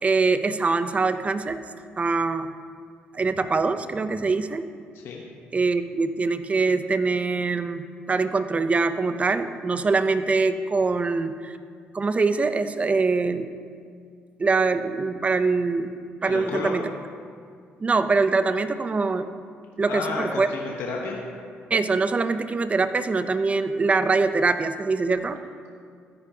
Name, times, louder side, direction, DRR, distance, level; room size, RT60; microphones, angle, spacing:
voice 1, 0.0-1.6 2.0-2.5 3.1-4.6 5.5-11.6 11.9-13.5 14.4-15.9 16.2-16.9 17.8-19.3 19.8-20.5 21.7-25.4, right 4 dB, 30° right, 11 dB, 0.6 m, -23 dB
voice 2, 16.3-16.8 19.9-21.2, left 4 dB, 75° left, -1 dB, 1.1 m, -31 dB
13.5 x 9.8 x 2.8 m, 2.2 s
cardioid pair, 75°, 4 cm